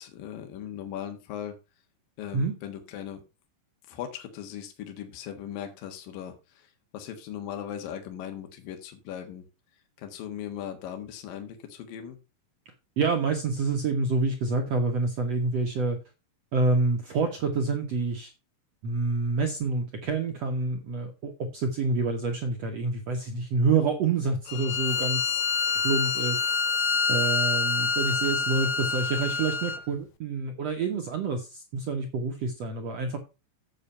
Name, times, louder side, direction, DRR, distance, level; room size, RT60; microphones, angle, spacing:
voice 1, 0.0-1.6 2.2-3.2 3.9-6.7 6.9-9.5 10.0-12.2, left 9 dB, 65° left, 5 dB, 3.1 m, -38 dB
voice 2, 13.0-16.0 16.5-18.3 18.8-25.3 25.8-26.5 27.1-33.2, right 3 dB, 65° right, 2 dB, 1.7 m, -27 dB
Bowed string instrument, 24.5-29.8, left 4 dB, 90° left, 1.6 m, -27 dB
8.2 x 7.1 x 5.6 m, 0.28 s
omnidirectional pair, 4.5 m